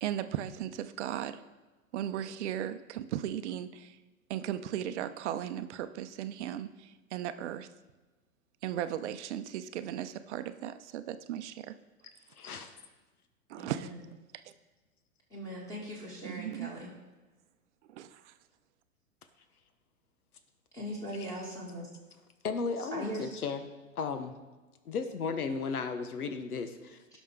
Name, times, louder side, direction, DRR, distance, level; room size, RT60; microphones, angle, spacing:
voice 1, 0.0-1.4 1.9-4.0 4.3-7.7 8.6-11.7 13.5-13.9 16.2-16.7 17.9-18.3, right 11 dB, 55° right, 11 dB, 0.7 m, -36 dB
voice 2, 12.4-12.7 22.4-23.6 24.0-24.4 24.9-27.2, left 5 dB, 85° left, 8 dB, 1.2 m, -35 dB
voice 3, 13.6-14.0 15.3-16.9 20.7-21.9 22.9-23.3 27.1-27.2, equal, 10° left, -5 dB, 2.4 m, -40 dB
17.0 x 6.2 x 3.7 m, 1.2 s
hypercardioid pair, 125°, 43 cm